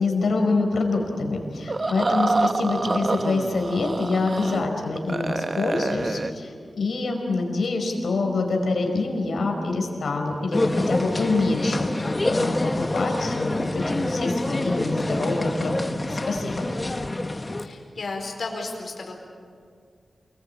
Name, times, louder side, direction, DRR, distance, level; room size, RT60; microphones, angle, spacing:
voice 1, 0.0-16.7, left 3 dB, 90° left, 2 dB, 5.1 m, -26 dB
sound 1, 1.7-4.7 4.9-6.3, right 3 dB, 40° right, 1.0 m, -27 dB
sound 2, 10.5-17.7, left 2 dB, 25° left, 1.2 m, -26 dB
voice 2, 17.6-19.2, left 3 dB, 70° left, 1 dB, 4.7 m, -33 dB
28.5 x 21.5 x 8.8 m, 2.2 s
wide cardioid pair, 105°, 0 cm